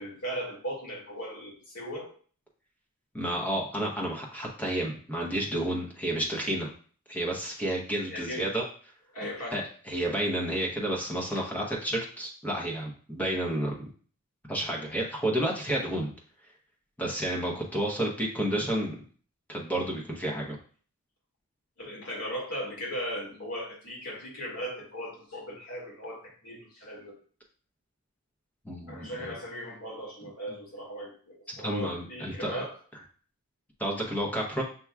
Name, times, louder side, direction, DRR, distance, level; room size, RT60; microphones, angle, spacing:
voice 1, 0.0-2.1 8.1-8.5 9.1-9.6 11.3-11.5 21.8-27.1 28.9-32.8, equal, 80° left, -4 dB, 2.0 m, -38 dB
voice 2, 3.1-6.7 7.1-8.6 9.5-13.8 14.5-16.1 17.0-18.9 19.5-20.6 28.6-29.3 31.6-32.6 33.8-34.6, right 1 dB, 5° left, -2 dB, 0.9 m, -31 dB
6.9 x 3.0 x 2.3 m, 0.43 s
head